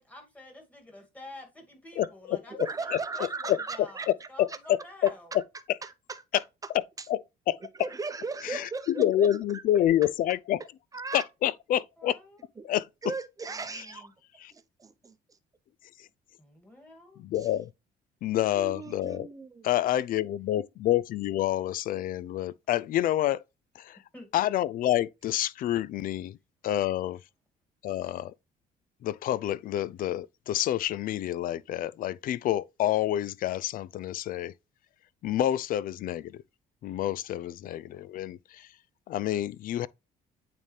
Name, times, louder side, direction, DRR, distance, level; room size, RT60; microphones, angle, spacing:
voice 1, 0.0-5.3 12.0-12.4 13.5-14.1 16.4-17.2 24.1-24.3, left 1 dB, 10° left, 2.3 m, -50 dB
voice 2, 2.0-2.7 3.5-3.6 4.4-4.5 5.0-5.1 7.1-7.2 7.5-7.6 8.4-8.7 9.0-10.6 11.1-12.2 12.7-12.8 14.4-14.5 16.0-16.1 17.2-17.7 18.2-19.3 19.6-23.4 23.8-24.0 24.3-26.4 26.6-27.2 27.8-28.3 29.0-34.5 35.2-36.4 36.8-38.7 39.1-39.9, left 12 dB, 55° left, 0.4 m, -28 dB
voice 3, 2.6-4.6 5.8-6.4 7.0-7.1 7.7-9.6 10.0-10.1 10.9-11.3 12.6-12.7 13.0-14.1 14.5-15.4 17.3-17.5 18.5-19.7, right 4 dB, 20° right, 0.8 m, -38 dB
8.9 x 3.7 x 3.3 m
cardioid pair, 110°, 17 cm